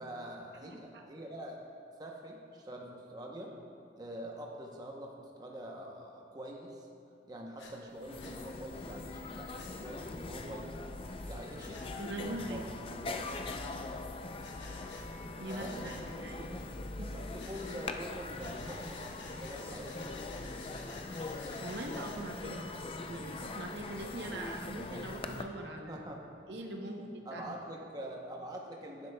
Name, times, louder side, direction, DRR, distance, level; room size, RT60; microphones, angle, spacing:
voice 1, 0.0-1.6 2.0-3.5 4.0-6.9 7.3-10.7 11.2-11.8 12.1-13.3 15.5-16.6 17.1-20.1 25.7-26.3 26.8-29.1, right 1 dB, 20° right, 0 dB, 0.7 m, -45 dB
voice 2, 0.6-1.0 12.0-12.6 15.4-16.5 17.0-17.1 21.6-22.7 23.0-26.0 26.5-27.5, right 1 dB, 65° right, 2 dB, 0.7 m, -42 dB
Breathing, 7.6-7.7 8.2-8.4 9.5-9.7 11.6-11.9 13.2-13.8 14.4-15.1 15.4-16.1 17.4-17.8 18.4-22.2, left 3 dB, 80° left, 1.1 m, -51 dB
sound 1, 7.7-7.8 8.0-25.4, left 3 dB, 30° left, 0.3 m, -42 dB
11.0 x 9.8 x 2.2 m, 2.4 s
head